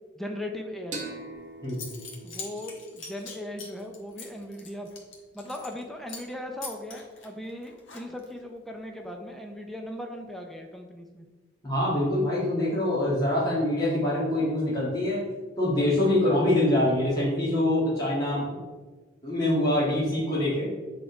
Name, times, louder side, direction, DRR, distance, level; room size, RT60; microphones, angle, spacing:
voice 1, 0.2-1.0 2.2-4.9 5.3-11.3, left 1 dB, ahead, 2 dB, 0.6 m, -38 dB
sound 1, 0.9-4.3, right 3 dB, 40° right, 1.3 m, -43 dB
Zipper (clothing) / Coin (dropping), 1.3-1.4 1.7-5.8 6.1-6.3 6.6-8.4, left 4 dB, 80° left, 1.3 m, -42 dB
voice 2, 11.6-15.2 15.6-18.4 19.2-20.7, left 1 dB, 20° left, -9 dB, 1.7 m, -24 dB
7.5 x 3.7 x 4.6 m, 1.3 s
head